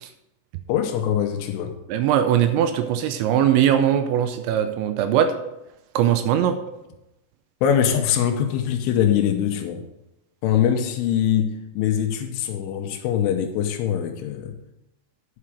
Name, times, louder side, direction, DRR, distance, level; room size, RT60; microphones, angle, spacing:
voice 1, 0.7-1.8 7.6-9.8 10.4-14.6, left 9 dB, 80° left, 3.3 m, -23 dB
voice 2, 1.9-5.3 6.0-6.6, right 10 dB, 85° right, 2.8 m, -20 dB
11.0 x 5.9 x 4.9 m
omnidirectional pair, 5.7 m